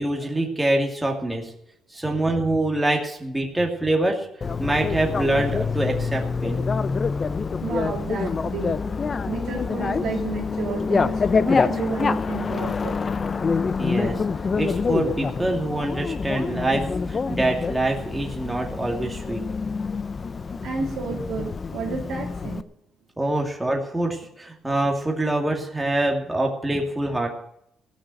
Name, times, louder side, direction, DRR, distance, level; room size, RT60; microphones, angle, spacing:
voice 1, 0.0-1.5 1.9-4.3 4.6-6.6 13.8-14.2 14.5-19.4 23.2-27.3, right 1 dB, 10° right, 0 dB, 2.6 m, -25 dB
Bicycle, 4.4-22.6, left 5 dB, 40° left, 0.7 m, -26 dB
voice 2, 7.6-8.8 9.3-13.2 20.6-22.6, right 5 dB, 75° right, 1 dB, 2.7 m, -31 dB
16.0 x 6.3 x 9.2 m, 0.75 s
cardioid pair, 90°, 0 cm